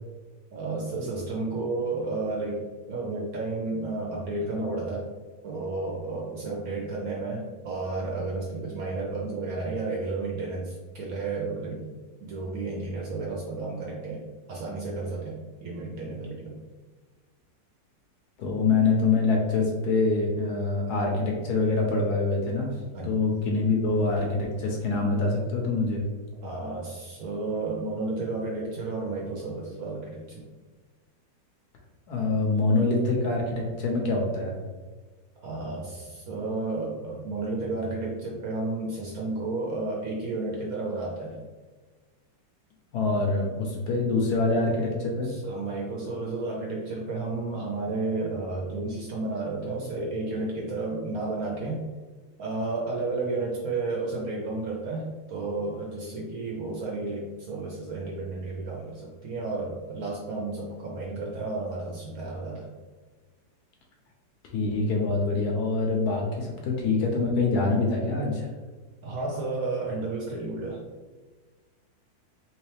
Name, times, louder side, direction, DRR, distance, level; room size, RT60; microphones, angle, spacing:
voice 1, 0.5-5.1 5.4-11.9 12.2-14.2 14.5-16.6 22.9-23.2 26.4-30.5 35.4-41.4 45.2-51.9 52.4-62.7 69.0-70.8, right 3 dB, 65° right, -2 dB, 0.9 m, -32 dB
voice 2, 18.4-22.8 23.0-26.0 32.1-34.5 42.9-45.3 64.5-68.5, left 3 dB, 70° left, 0 dB, 1.1 m, -25 dB
3.1 x 3.1 x 3.2 m, 1.3 s
omnidirectional pair, 2.0 m